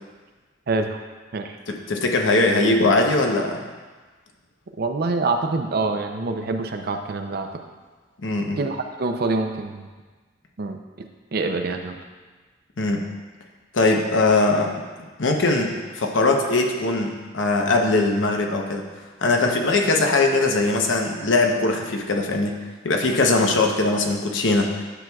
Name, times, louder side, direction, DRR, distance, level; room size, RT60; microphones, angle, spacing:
voice 1, 0.7-1.0 1.3-1.6 4.8-7.6 8.6-9.9 10.6-12.0, right 3 dB, 55° right, 5 dB, 0.5 m, -26 dB
voice 2, 1.7-3.6 8.2-8.6 12.8-13.0 13.7-14.8 15.2-18.8 19.2-22.6 22.8-24.7, left 2 dB, 80° left, 2 dB, 0.8 m, -21 dB
10.0 x 6.0 x 2.3 m, 1.3 s
head